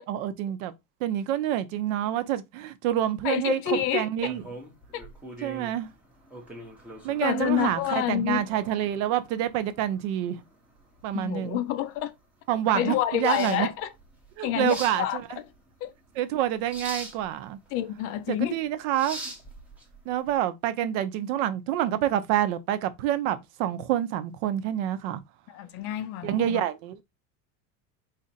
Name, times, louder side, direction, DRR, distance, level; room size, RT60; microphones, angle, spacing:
voice 1, 0.1-0.7 1.0-4.4 5.4-5.9 7.0-10.4 11.0-11.6 12.5-13.7 14.4-15.4 16.1-17.6 18.3-19.2 20.1-25.2 26.2-27.0, right 12 dB, 65° right, 0.7 m, -27 dB
voice 2, 3.2-4.1 4.9-5.0 7.2-8.4 11.1-12.1 12.7-13.9 14.4-15.2 15.8-15.9 17.7-18.6 25.5-26.6, left 12 dB, 35° left, 0.4 m, -28 dB
sound 1, 4.2-20.4, right 1 dB, 5° right, 0.6 m, -44 dB
4.1 x 2.6 x 4.0 m
cardioid pair, 160°, 42 cm